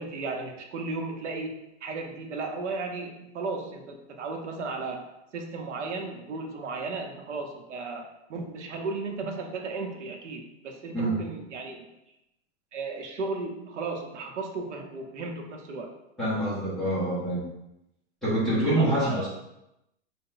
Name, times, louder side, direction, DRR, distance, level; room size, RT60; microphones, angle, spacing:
voice 1, 0.0-5.1 5.3-11.9 12.7-15.9 18.6-19.2, right 3 dB, 90° right, 3 dB, 0.9 m, -35 dB
voice 2, 16.2-17.4 18.2-19.3, right 1 dB, ahead, -12 dB, 0.7 m, -26 dB
4.2 x 2.2 x 3.8 m, 0.88 s
supercardioid pair, 175°, 34 cm